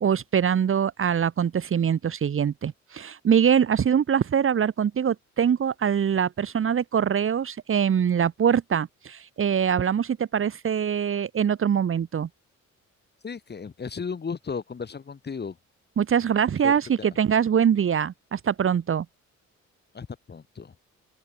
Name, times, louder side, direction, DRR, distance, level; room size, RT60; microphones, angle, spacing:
voice 1, 0.0-12.3 16.0-19.0, right 8 dB, 45° right, 1.2 m, -23 dB
voice 2, 13.2-15.6 16.6-17.1 19.9-20.7, left 5 dB, 35° left, 2.1 m, -35 dB
open air
cardioid pair, 90°, 30 cm